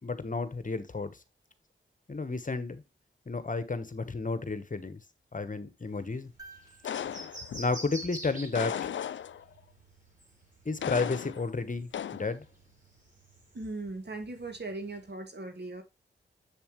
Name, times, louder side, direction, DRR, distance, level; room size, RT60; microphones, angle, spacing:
voice 1, 0.0-1.1 2.1-2.8 3.3-5.0 5.3-6.3 7.6-8.8 10.6-12.4, left 3 dB, 40° left, 1.2 m, -32 dB
sound 1, 5.9-15.1, right 1 dB, 40° right, 3.8 m, -49 dB
sound 2, 6.4-8.7 10.7-10.8, right 3 dB, 20° right, 2.8 m, -56 dB
sound 3, 6.8-7.7 8.5-9.6 10.8-11.5 11.9-12.3, left 9 dB, 65° left, 0.4 m, -36 dB
voice 2, 13.5-15.8, right 2 dB, 55° right, 2.2 m, -38 dB
7.5 x 6.9 x 3.1 m
cardioid pair, 45°, 21 cm